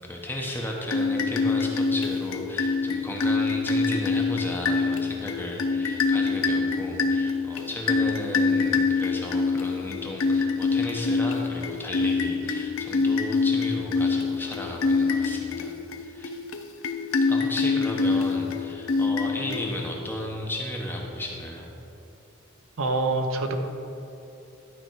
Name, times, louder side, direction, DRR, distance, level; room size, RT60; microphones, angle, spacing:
voice 1, 0.0-15.7 16.0-16.4 17.3-21.7, left 1 dB, 10° left, -1 dB, 0.9 m, -34 dB
sound 1, 0.9-20.1, left 4 dB, 70° left, 0.5 m, -25 dB
voice 2, 22.8-23.5, right 2 dB, 70° right, 5 dB, 0.7 m, -25 dB
11.5 x 4.5 x 4.6 m, 2.8 s
head